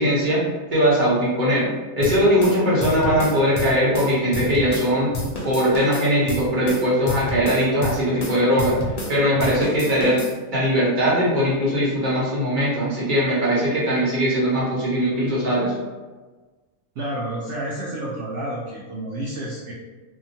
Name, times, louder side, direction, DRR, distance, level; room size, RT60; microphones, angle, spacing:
voice 1, 0.0-1.6 2.0-5.1 5.4-8.7 9.1-10.2 10.5-15.7, equal, 40° right, -7 dB, 1.0 m, -20 dB
sound 1, 2.0-4.9 5.1-9.1 9.4-10.3, left 1 dB, 75° left, 0.3 m, -29 dB
voice 2, 17.0-19.7, right 1 dB, 65° right, -4 dB, 0.8 m, -30 dB
2.7 x 2.3 x 2.7 m, 1.3 s
omnidirectional pair, 1.4 m